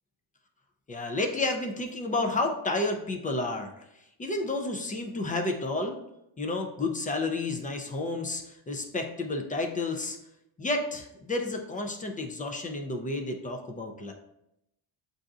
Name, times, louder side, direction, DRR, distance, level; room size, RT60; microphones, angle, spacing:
voice 1, 0.9-3.7 4.2-5.9 6.4-10.2 10.6-14.1, left 2 dB, 20° left, 3 dB, 0.3 m, -31 dB
7.5 x 2.6 x 2.4 m, 0.84 s
cardioid pair, 125°, 46 cm